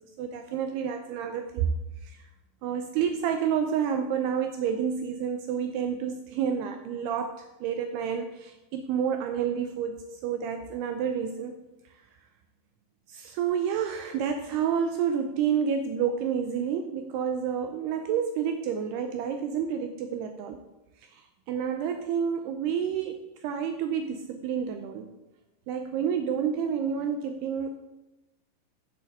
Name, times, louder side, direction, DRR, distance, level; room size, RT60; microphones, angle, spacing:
voice 1, 0.2-1.7 2.0-2.3 2.6-11.6 11.9-12.0 13.1-20.6 21.0-25.1 25.7-27.7, right 7 dB, 90° right, 6 dB, 2.4 m, -29 dB
8.1 x 7.1 x 7.3 m, 0.98 s
omnidirectional pair, 5.3 m